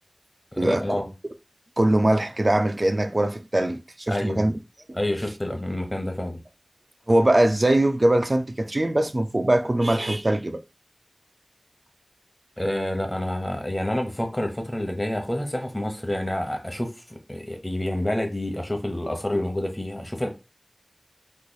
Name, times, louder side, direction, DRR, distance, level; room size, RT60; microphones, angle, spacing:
voice 1, 0.5-1.1 4.1-4.5 4.9-6.4 12.6-20.3, left 1 dB, 25° left, 0.9 m, -28 dB
voice 2, 1.8-4.5 7.1-10.6, right 1 dB, 50° right, 0.3 m, -21 dB
3.1 x 2.3 x 3.8 m
wide cardioid pair, 40°, 0 cm